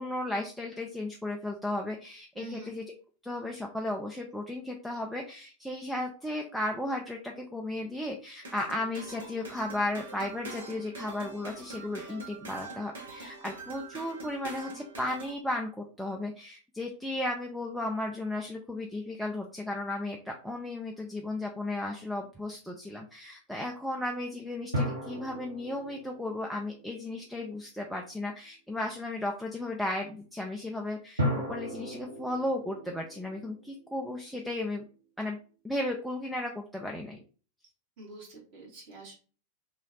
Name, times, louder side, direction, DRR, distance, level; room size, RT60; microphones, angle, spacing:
voice 1, 0.0-2.8 3.2-34.8 35.2-35.4 35.6-37.2, left 1 dB, ahead, 0 dB, 0.4 m, -35 dB
voice 2, 2.3-2.7 11.7-12.2 38.0-39.1, right 2 dB, 45° right, -3 dB, 1.7 m, -46 dB
sound 1, 8.4-15.3, right 3 dB, 65° right, 1.1 m, -44 dB
sound 2, 24.7-27.6 31.2-34.5, equal, 85° right, 1.5 m, -36 dB
3.1 x 2.4 x 3.8 m, 0.39 s
figure-of-eight pair, 90°, 0 cm